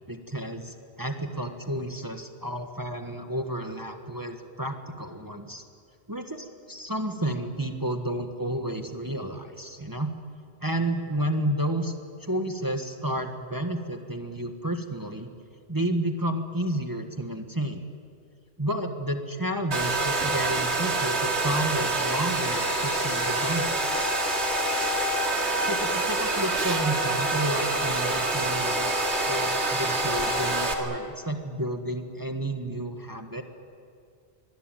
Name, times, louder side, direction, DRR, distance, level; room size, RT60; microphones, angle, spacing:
voice 1, 0.1-5.6 6.1-10.1 10.6-11.9 12.2-15.3 15.7-17.8 18.6-24.1 25.6-29.0 29.3-33.4, right 1 dB, 20° right, 5 dB, 1.5 m, -31 dB
Domestic sounds home sounds, 19.7-30.7, right 2 dB, 80° right, 2.6 m, -26 dB
25.0 x 20.5 x 9.2 m, 2.3 s
omnidirectional pair, 1.1 m